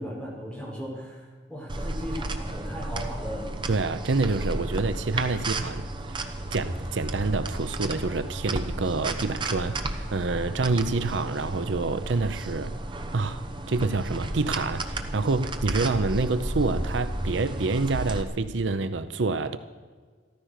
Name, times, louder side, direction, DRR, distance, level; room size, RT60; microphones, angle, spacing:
voice 1, 0.0-3.5, equal, 5° left, 4.9 m, -37 dB
sound 1, 1.7-18.2, right 2 dB, 25° right, 0.9 m, -33 dB
voice 2, 3.7-12.7 13.1-19.6, right 3 dB, 75° right, 0.7 m, -27 dB
14.0 x 13.5 x 6.5 m
head